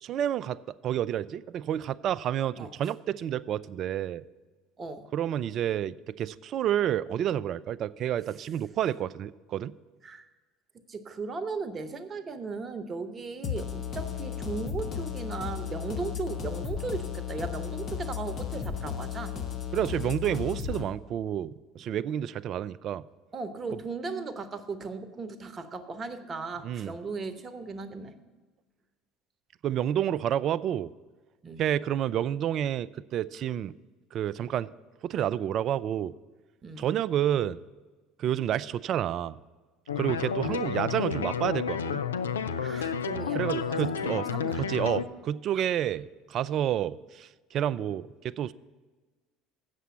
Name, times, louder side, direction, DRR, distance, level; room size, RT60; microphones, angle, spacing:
voice 1, 0.0-4.2 5.1-9.7 19.7-23.0 23.7-23.8 26.6-26.9 29.6-30.9 31.6-33.7 34.1-34.7 35.0-36.1 36.8-37.6 38.2-39.4 40.0-42.0 43.3-44.3 44.6-48.5, right 10 dB, 50° right, 18 dB, 0.3 m, -29 dB
voice 2, 10.9-19.3 23.3-28.1 31.4-31.6 36.6-36.8 40.4-40.6 42.6-44.6, right 4 dB, 35° right, 10 dB, 0.9 m, -37 dB
sound 1, 13.4-20.8, left 8 dB, 45° left, 1.0 m, -34 dB
sound 2, 39.9-45.0, left 6 dB, 85° left, 0.4 m, -31 dB
8.2 x 6.9 x 7.4 m, 1.3 s
hypercardioid pair, 65°, 0 cm